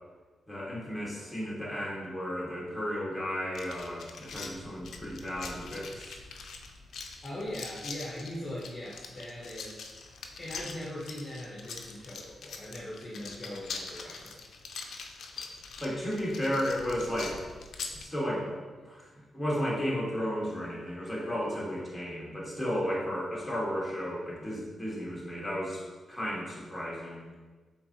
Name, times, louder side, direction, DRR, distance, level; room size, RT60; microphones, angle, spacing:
voice 1, 0.5-6.2 15.8-17.5 17.9-18.6 18.8-25.8 26.1-27.3, equal, 5° left, -6 dB, 1.4 m, -33 dB
sound 1, 3.5-18.1, left 4 dB, 75° left, 0.4 m, -43 dB
voice 2, 7.2-9.9 10.4-14.4, left 1 dB, 25° left, -7 dB, 0.9 m, -40 dB
4.5 x 3.5 x 2.8 m, 1.4 s
cardioid pair, 95°, 0 cm